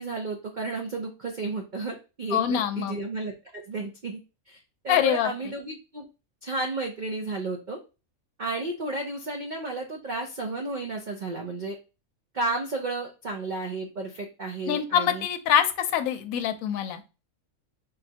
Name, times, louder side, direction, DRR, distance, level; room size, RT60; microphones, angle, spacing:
voice 1, 0.0-4.2 4.5-6.1 6.4-7.8 8.4-11.8 12.3-15.3, right 3 dB, 60° right, 2 dB, 0.5 m, -32 dB
voice 2, 2.3-3.0 4.9-5.3 14.7-17.0, left 9 dB, 75° left, 8 dB, 1.0 m, -24 dB
4.0 x 3.2 x 2.7 m, 0.30 s
omnidirectional pair, 1.5 m